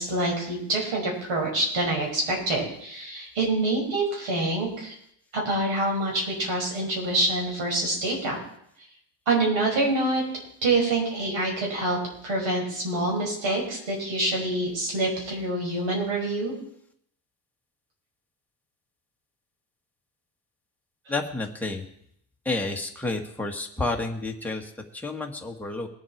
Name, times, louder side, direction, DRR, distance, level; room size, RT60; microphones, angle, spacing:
voice 1, 0.0-5.0 5.3-8.4 9.3-10.2 10.6-12.0 12.2-16.5 21.1-21.2, right 2 dB, 85° right, -1 dB, 6.1 m, -26 dB
voice 2, 21.1-21.8 22.4-25.9, left 2 dB, 5° left, 0 dB, 1.5 m, -30 dB
21.0 x 7.9 x 4.5 m, 0.71 s
cardioid pair, 140°, 45 cm